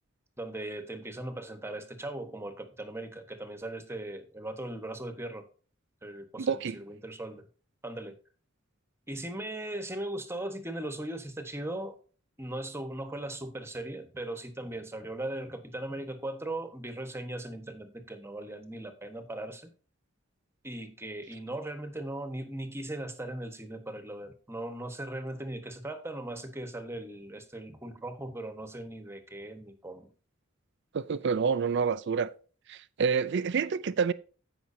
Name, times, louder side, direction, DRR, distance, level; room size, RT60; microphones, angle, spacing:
voice 1, 0.4-5.4 6.0-7.5 7.8-8.2 9.1-12.0 12.4-19.7 20.6-30.1, right 1 dB, 15° right, 1.3 m, -38 dB
voice 2, 6.4-6.8 30.9-32.3 32.7-34.1, right 6 dB, 60° right, 0.5 m, -28 dB
15.0 x 6.1 x 2.7 m
head